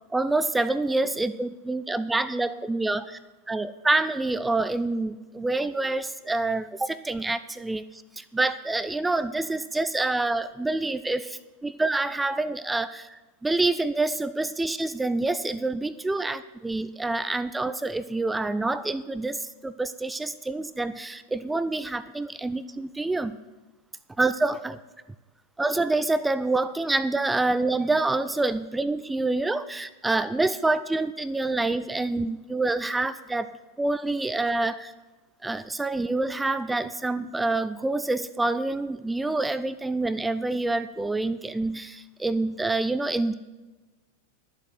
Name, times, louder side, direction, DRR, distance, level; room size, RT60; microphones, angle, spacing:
voice 1, 0.1-3.2 3.5-23.4 24.2-24.8 25.6-33.5 33.8-34.9 35.4-43.3, right 2 dB, 10° right, 13 dB, 0.4 m, -27 dB
11.5 x 7.6 x 7.5 m, 1.2 s
figure-of-eight pair, 90°, 0 cm